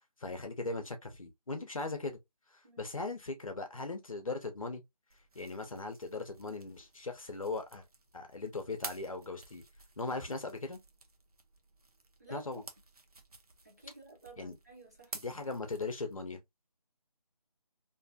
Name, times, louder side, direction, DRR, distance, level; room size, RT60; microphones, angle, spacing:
voice 1, 0.2-2.2 2.5-4.8 5.3-7.9 8.1-9.6 10.0-10.8 12.3-12.6 14.4-14.6 15.2-16.4, left 3 dB, 55° left, 0.7 m, -39 dB
sound 1, 5.1-16.3, right 3 dB, 65° right, 0.7 m, -52 dB
voice 2, 12.2-12.7 13.6-15.1, right 3 dB, 25° right, 0.7 m, -52 dB
2.6 x 2.4 x 2.2 m
figure-of-eight pair, 180°, 20 cm